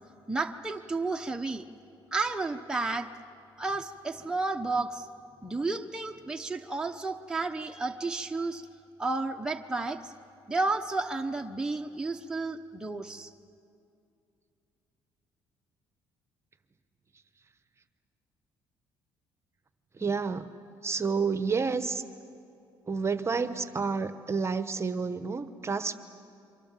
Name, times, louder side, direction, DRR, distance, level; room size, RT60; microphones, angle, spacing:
voice 1, 0.3-1.6 2.1-3.1 3.6-5.1 5.4-8.6 9.0-10.1 10.5-13.3, right 3 dB, 10° right, 2 dB, 1.0 m, -32 dB
voice 2, 20.0-20.5 20.8-22.0 22.9-26.0, right 5 dB, 30° right, 11 dB, 1.1 m, -29 dB
28.5 x 24.0 x 7.5 m, 2.6 s
cardioid pair, 100°, 9 cm